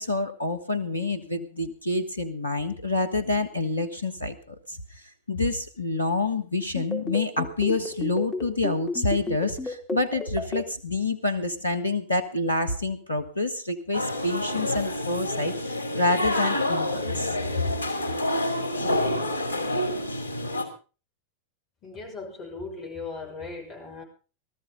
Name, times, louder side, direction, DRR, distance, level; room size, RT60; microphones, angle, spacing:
voice 1, 0.0-4.8 5.3-17.6, left 2 dB, 80° left, 11 dB, 1.5 m, -27 dB
sound 1, 6.8-10.6, left 2 dB, 15° left, 2.8 m, -31 dB
sound 2, 13.9-20.6, left 1 dB, 90° right, 2.5 m, -28 dB
voice 2, 21.8-24.0, left 3 dB, 30° left, 1 dB, 5.9 m, -38 dB
18.5 x 13.5 x 3.9 m, 0.36 s
figure-of-eight pair, 90°, 0 cm